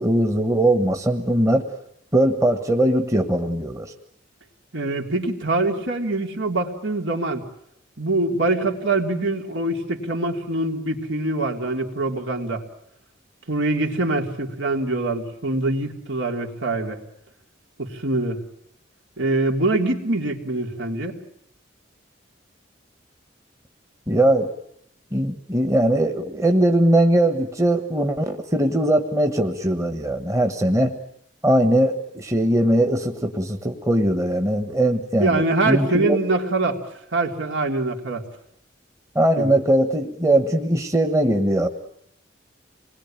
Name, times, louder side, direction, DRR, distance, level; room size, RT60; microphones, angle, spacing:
voice 1, 0.0-1.6 2.1-3.9 24.1-24.5 25.1-30.9 31.4-36.2 39.1-41.7, right 1 dB, 15° right, 5 dB, 1.4 m, -20 dB
voice 2, 4.7-7.4 8.0-12.6 13.5-17.0 17.8-18.4 19.2-21.2 35.2-36.8 37.1-38.2 39.4-39.5, right 2 dB, 80° right, 2 dB, 3.5 m, -24 dB
27.0 x 21.0 x 9.0 m, 0.73 s
head